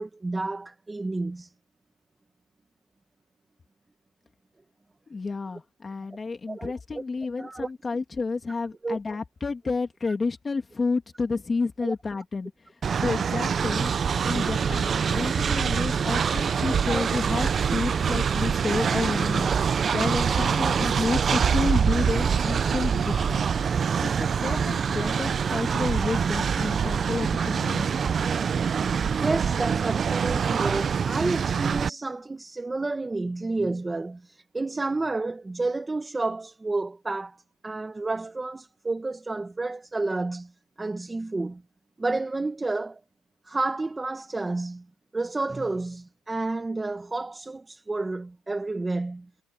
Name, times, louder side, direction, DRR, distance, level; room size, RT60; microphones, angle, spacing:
voice 1, 0.0-1.5 6.5-7.0 7.4-7.7 8.8-9.0 11.8-11.9 14.6-14.7 16.9-17.0 21.3-21.4 26.1-26.2 29.2-37.4 37.6-40.5 40.8-41.6 42.0-43.0 43.5-44.8 45.1-49.3, right 3 dB, 10° right, 1.1 m, -30 dB
voice 2, 5.1-13.9 14.3-19.5 19.9-23.4 24.0-27.9, left 4 dB, 15° left, 2.6 m, -30 dB
Train, 12.8-31.9, right 6 dB, 25° right, 0.5 m, -25 dB
cardioid pair, 140°, 0 cm